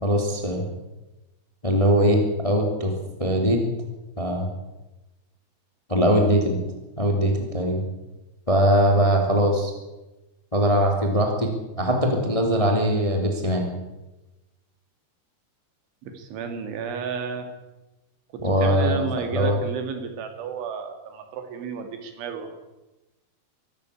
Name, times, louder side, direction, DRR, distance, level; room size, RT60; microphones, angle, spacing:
voice 1, 0.0-0.6 1.6-2.9 3.2-3.6 4.2-4.5 5.9-6.6 7.0-7.8 8.5-9.7 10.5-11.5 11.8-13.7 18.4-19.1 19.3-19.6, equal, 10° left, 2 dB, 2.1 m, -21 dB
voice 2, 16.0-17.5 18.3-22.6, right 6 dB, 80° right, 7 dB, 4.7 m, -32 dB
24.0 x 12.5 x 8.5 m, 1.0 s
omnidirectional pair, 5.4 m